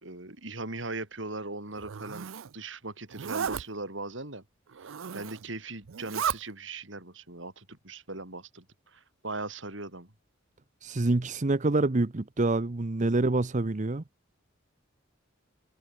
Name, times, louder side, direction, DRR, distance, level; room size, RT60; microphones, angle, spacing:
voice 1, 0.0-4.4 4.8-8.6 8.9-10.1, right 2 dB, 65° right, 4.8 m, -39 dB
Zipper (clothing), 1.7-2.5 3.1-3.6 4.7-5.4 5.9-6.4, right 7 dB, 80° right, 0.6 m, -34 dB
voice 2, 10.8-14.0, right 2 dB, 40° right, 0.8 m, -26 dB
head